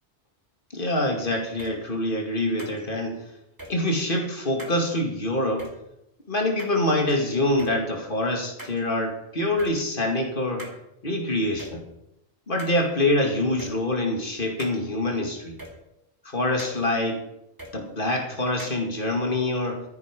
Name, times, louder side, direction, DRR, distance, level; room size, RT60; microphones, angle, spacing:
voice 1, 0.7-3.2 3.7-5.7 6.3-10.7 11.0-11.8 12.5-15.6 16.3-17.2 17.7-19.8, left 1 dB, 50° left, 1 dB, 2.6 m, -25 dB
sound 1, 1.6-1.7 2.6-2.8 3.6-3.7 4.6-4.8 5.6-5.7 6.6-7.1 7.6-7.7 8.6-8.8 9.6-9.7 10.6-10.8 11.6-11.7 12.6-12.8 13.6-13.7 14.6-14.8 15.6-15.7 16.6-16.8 17.6-17.7 18.6-18.8, right 1 dB, 20° right, 2.5 m, -40 dB
14.0 x 9.8 x 5.4 m, 0.85 s
omnidirectional pair, 1.1 m